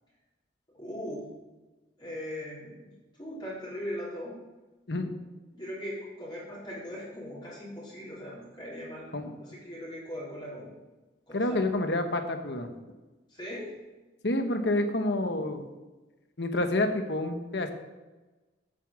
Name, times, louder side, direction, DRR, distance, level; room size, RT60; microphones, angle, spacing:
voice 1, 0.8-1.3 2.0-2.8 3.2-4.4 5.5-9.1 9.4-10.7 11.3-11.6 13.3-13.7, equal, 25° left, -7 dB, 3.4 m, -39 dB
voice 2, 11.3-12.7 14.2-15.7 16.4-17.7, left 1 dB, 65° left, 6 dB, 1.1 m, -28 dB
8.2 x 7.4 x 7.3 m, 1.2 s
head